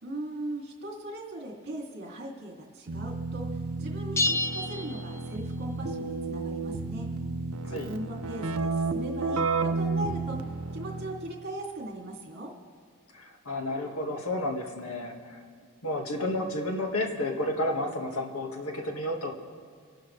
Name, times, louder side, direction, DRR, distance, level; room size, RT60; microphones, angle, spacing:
voice 1, 0.0-7.1 7.7-12.5, right 1 dB, 50° right, 0 dB, 2.6 m, -39 dB
Keyboard (musical), 2.9-11.3, right 3 dB, 70° right, 0.7 m, -32 dB
sound 1, 4.2-5.7, left 2 dB, 15° left, 0.4 m, -30 dB
voice 2, 13.1-15.4 15.8-19.3, left 1 dB, 80° left, 2 dB, 1.8 m, -31 dB
28.0 x 12.0 x 3.3 m, 2.1 s
head